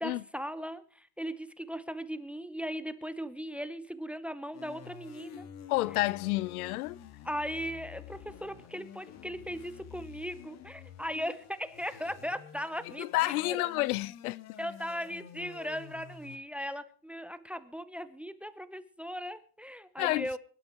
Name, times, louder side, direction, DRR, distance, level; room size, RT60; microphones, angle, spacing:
voice 1, 0.0-5.5 7.2-13.7 14.6-20.4, equal, 5° right, 0.6 m, -38 dB
sound 1, 4.5-16.4, left 8 dB, 35° left, 1.9 m, -49 dB
voice 2, 5.7-7.0 13.0-14.4 20.0-20.3, left 19 dB, 75° left, 0.7 m, -29 dB
24.0 x 12.0 x 3.0 m
supercardioid pair, 135°, 45 cm